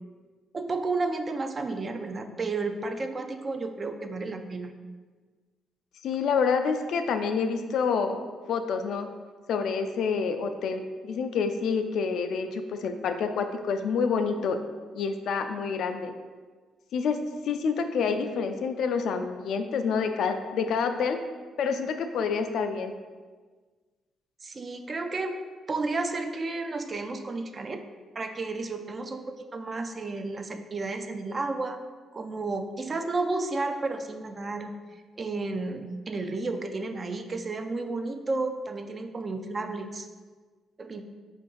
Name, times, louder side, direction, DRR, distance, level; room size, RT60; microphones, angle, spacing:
voice 1, 0.5-4.7 24.4-25.4 25.7-27.8 28.2-31.8 32.1-34.7 35.2-40.1 40.8-41.0, right 3 dB, 35° right, 6 dB, 0.4 m, -32 dB
voice 2, 6.0-8.2 8.5-9.1 9.5-14.6 14.9-16.1 16.9-21.2 21.6-22.9, left 5 dB, 75° left, 7 dB, 0.3 m, -28 dB
4.5 x 2.5 x 3.8 m, 1.4 s
cardioid pair, 90°, 0 cm